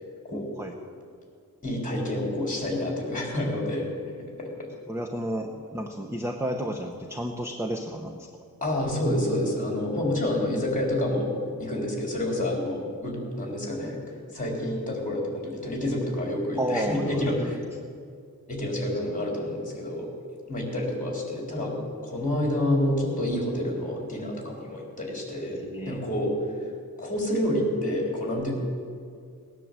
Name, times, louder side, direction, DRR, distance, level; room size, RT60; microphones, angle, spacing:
voice 1, 0.3-0.7 4.9-8.3 16.6-17.5 25.5-26.0, equal, 10° right, 1 dB, 0.8 m, -32 dB
voice 2, 1.6-3.9 4.4-4.7 8.6-14.0 14.3-17.6 18.5-20.1 20.5-21.7 22.0-25.6 25.9-26.3 27.0-28.5, left 1 dB, 25° left, -2 dB, 3.9 m, -28 dB
19.0 x 9.9 x 7.6 m, 2.2 s
wide cardioid pair, 170°, 35 cm